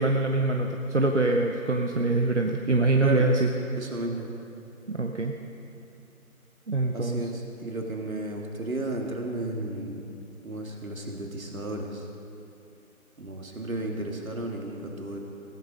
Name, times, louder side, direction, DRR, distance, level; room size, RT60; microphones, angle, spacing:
voice 1, 0.0-3.5 4.9-5.3 6.7-7.3, right 2 dB, 55° right, 3 dB, 0.9 m, -24 dB
voice 2, 3.7-4.3 6.9-10.1 10.4-12.1 13.2-15.2, right 2 dB, 70° right, 1 dB, 2.4 m, -33 dB
16.5 x 11.5 x 5.2 m, 2.9 s
figure-of-eight pair, 175°, 43 cm